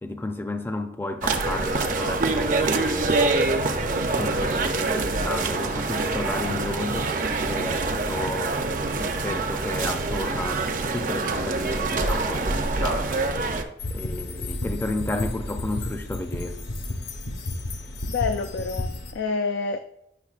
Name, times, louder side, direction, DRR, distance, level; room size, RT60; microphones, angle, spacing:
voice 1, 0.0-7.2 7.5-13.4 13.9-16.7, left 2 dB, 10° left, 0.4 m, -32 dB
sound 1, 1.2-13.6, right 3 dB, 45° right, 0.5 m, -25 dB
sound 2, 13.8-19.1, left 1 dB, 70° left, 0.9 m, -32 dB
voice 2, 18.1-19.8, left 4 dB, 90° left, 0.4 m, -28 dB
8.3 x 6.0 x 2.4 m
head